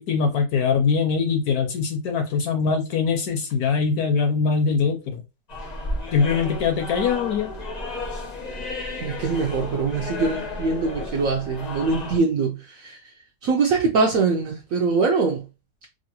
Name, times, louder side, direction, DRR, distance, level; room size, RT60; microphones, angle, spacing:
voice 1, 0.0-5.2 6.1-7.5, left 5 dB, 70° left, 0.9 m, -22 dB
sound 1, 5.5-12.2, left 2 dB, 55° left, 0.4 m, -33 dB
voice 2, 9.0-13.0 13.4-15.4, right 4 dB, 70° right, 0.8 m, -23 dB
3.1 x 2.5 x 2.8 m
omnidirectional pair, 1.9 m